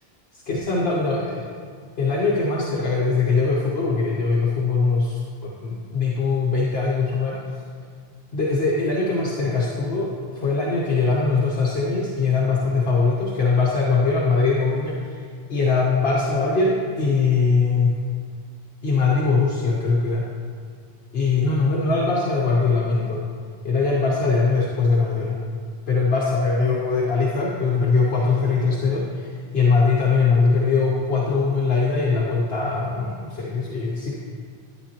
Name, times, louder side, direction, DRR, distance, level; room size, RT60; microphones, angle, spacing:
voice 1, 0.3-1.5 2.0-7.6 8.3-17.9 18.8-20.3 21.1-23.2 23.6-25.4 25.9-34.1, left 4 dB, 65° left, -4 dB, 1.2 m, -21 dB
10.5 x 9.9 x 2.9 m, 2.1 s
omnidirectional pair, 1.1 m